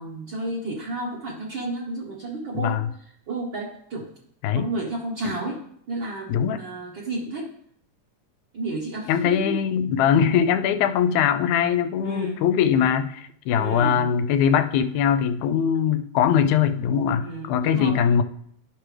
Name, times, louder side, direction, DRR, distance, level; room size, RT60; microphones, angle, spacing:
voice 1, 0.0-2.8 3.3-4.1 4.5-5.6 5.9-7.5 8.5-9.6 9.9-10.0 10.7-11.0 12.0-12.4 13.5-14.1 17.2-18.0, right 2 dB, 55° right, -3 dB, 1.4 m, -32 dB
voice 2, 6.3-6.6 9.1-18.2, left 8 dB, 80° left, 10 dB, 1.9 m, -21 dB
11.5 x 6.0 x 3.3 m, 0.66 s
omnidirectional pair, 3.5 m